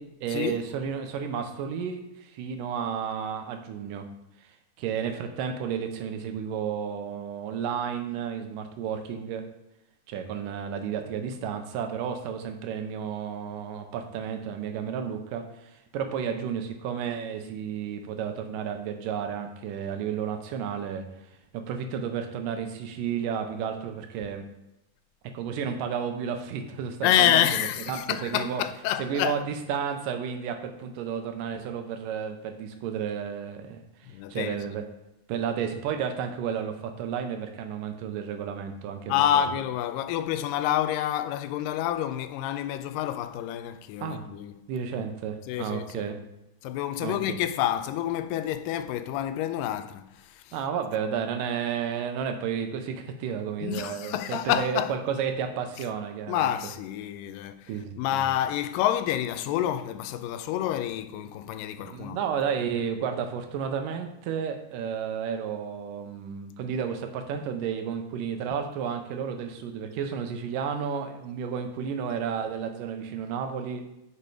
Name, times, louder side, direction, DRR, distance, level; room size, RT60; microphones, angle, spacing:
voice 1, 0.0-4.0 4.8-9.4 10.1-21.0 21.5-24.5 25.3-27.4 27.9-28.6 29.0-34.8 35.3-39.5 44.0-44.3 44.7-46.2 47.0-47.2 50.5-56.5 57.7-58.3 61.8-73.8, right 7 dB, 85° right, 2.4 m, -32 dB
voice 2, 27.0-29.4 34.1-34.6 39.1-44.5 44.9-45.0 45.5-46.1 46.6-50.5 53.6-54.9 56.3-57.7 58.0-62.2, left 11 dB, 90° left, 2.2 m, -28 dB
6.9 x 5.7 x 4.9 m
omnidirectional pair, 3.8 m